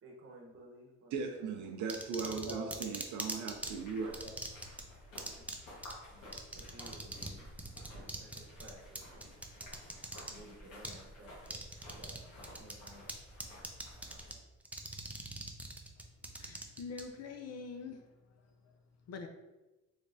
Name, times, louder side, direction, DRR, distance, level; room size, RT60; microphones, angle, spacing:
voice 1, 0.0-1.2 2.2-2.8 4.2-4.3 5.3-5.4 5.9-7.4 7.8-9.3 10.3-11.6 11.9-12.2 12.5-13.0, equal, 45° right, -1 dB, 0.9 m, -53 dB
voice 2, 1.1-4.2, right 5 dB, 80° right, 3 dB, 0.5 m, -38 dB
sound 1, 1.9-3.7 4.1-4.8 5.2-5.6 5.8-5.9 6.3-7.3 7.6-10.3 10.8-11.0 11.5-12.2 12.4-13.1 13.4-14.3 14.7-17.0, right 1 dB, 5° right, 0.4 m, -41 dB
sound 2, 3.5-14.3, left 1 dB, 90° left, 1.3 m, -53 dB
voice 3, 16.4-18.0 19.1-19.3, left 5 dB, 60° left, 4 dB, 0.5 m, -44 dB
3.3 x 3.2 x 2.6 m, 1.1 s
cardioid pair, 90°, 30 cm